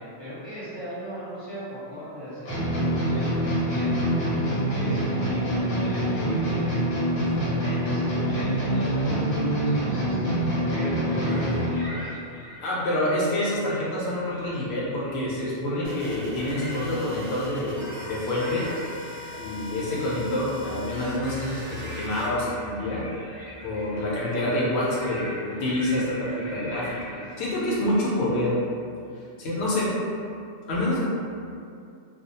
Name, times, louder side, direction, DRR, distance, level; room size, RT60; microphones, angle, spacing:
voice 1, 0.0-4.0 4.7-6.6 7.1-12.1, equal, 25° left, -12 dB, 0.9 m, -38 dB
sound 1, 2.5-11.9, right 1 dB, 85° left, 1.1 m, -25 dB
sound 2, 11.1-13.2 13.6-15.2 15.6-27.3, equal, 30° right, 0.4 m, -42 dB
voice 2, 12.6-18.7 19.4-23.0 23.6-28.5 29.4-29.9 30.7-31.0, left 1 dB, 65° left, -6 dB, 0.9 m, -27 dB
sound 3, 15.8-22.3, equal, 65° right, 0.7 m, -40 dB
2.3 x 2.1 x 2.7 m, 2.4 s
omnidirectional pair, 1.2 m